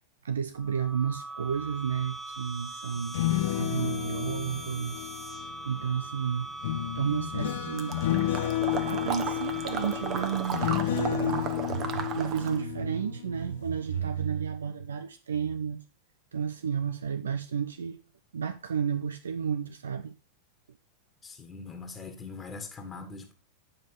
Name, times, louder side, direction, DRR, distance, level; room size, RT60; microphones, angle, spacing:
voice 1, 0.2-5.4 5.6-6.5 6.9-8.0 8.8-15.8 16.3-18.0 18.3-20.1, right 7 dB, 70° right, 0.5 m, -32 dB
sound 1, 0.5-10.9, right 2 dB, 5° right, 1.7 m, -41 dB
sound 2, 3.0-5.8 6.6-13.6 13.9-14.2, left 14 dB, 55° left, 0.6 m, -31 dB
Water / Liquid, 7.8-12.6, right 7 dB, 35° right, 1.2 m, -35 dB
voice 2, 21.2-23.3, left 4 dB, 15° left, 1.7 m, -42 dB
9.7 x 5.4 x 4.7 m
figure-of-eight pair, 90°, 0 cm